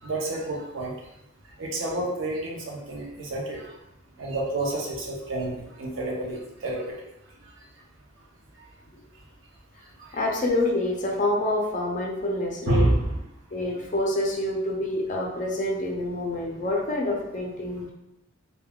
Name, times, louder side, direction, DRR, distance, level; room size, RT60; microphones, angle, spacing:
voice 1, 0.0-0.9 1.6-3.8 4.2-6.9 10.0-10.2 12.7-13.2, right 2 dB, 65° right, -2 dB, 0.6 m, -28 dB
voice 2, 10.1-13.0 13.5-17.9, left 1 dB, 35° left, -1 dB, 0.4 m, -27 dB
3.5 x 2.2 x 2.2 m, 0.87 s
head